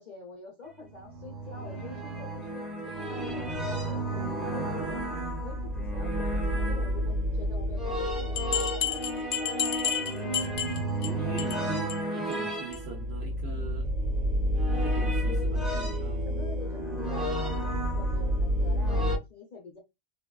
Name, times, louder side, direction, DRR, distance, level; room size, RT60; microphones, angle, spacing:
voice 1, 0.0-5.0 5.4-10.1 11.2-11.7 14.7-15.6 16.2-19.8, left 4 dB, 40° left, 0.7 m, -46 dB
sound 1, 0.9-19.2, equal, ahead, 0.4 m, -30 dB
sound 2, 8.4-11.1 11.4-11.6 11.9-12.0 12.3-12.4 12.7-12.8, left 9 dB, 75° left, 0.9 m, -31 dB
voice 2, 10.2-11.8 12.1-13.9 14.7-16.4, right 4 dB, 65° right, 0.7 m, -42 dB
3.3 x 2.2 x 2.2 m
omnidirectional pair, 1.4 m